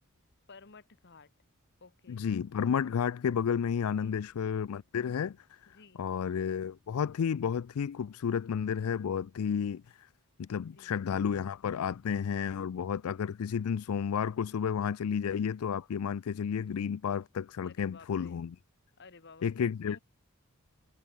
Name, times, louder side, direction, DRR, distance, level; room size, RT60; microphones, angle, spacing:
voice 1, 0.5-1.3 1.8-2.2 3.9-4.2 5.7-6.0 10.6-10.9 17.6-18.4 19.0-20.0, left 4 dB, 50° left, 1.3 m, -54 dB
voice 2, 2.1-5.6 6.0-10.1 10.4-18.6 19.4-20.0, left 7 dB, 80° left, 0.4 m, -32 dB
head